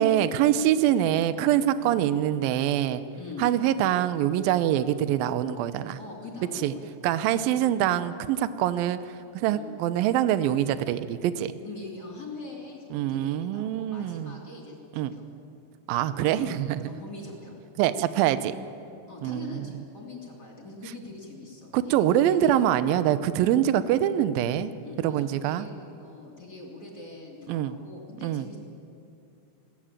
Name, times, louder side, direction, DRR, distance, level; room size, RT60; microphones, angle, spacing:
voice 1, 0.0-3.0 3.4-6.0 6.6-6.7 7.0-11.5 12.9-14.4 14.9-15.1 15.9-16.8 17.8-18.5 19.2-19.7 21.7-24.7 25.0-25.7 27.5-27.7 28.2-28.5, right 11 dB, 85° right, 13 dB, 2.0 m, -24 dB
voice 2, 3.1-3.5 6.0-6.9 7.3-7.6 9.4-9.7 11.6-15.2 16.2-16.6 16.9-17.6 18.3-18.4 19.1-22.7 23.4-23.6 24.8-28.6, left 3 dB, 25° left, -2 dB, 3.0 m, -43 dB
21.5 x 16.5 x 8.8 m, 2.7 s
omnidirectional pair, 5.2 m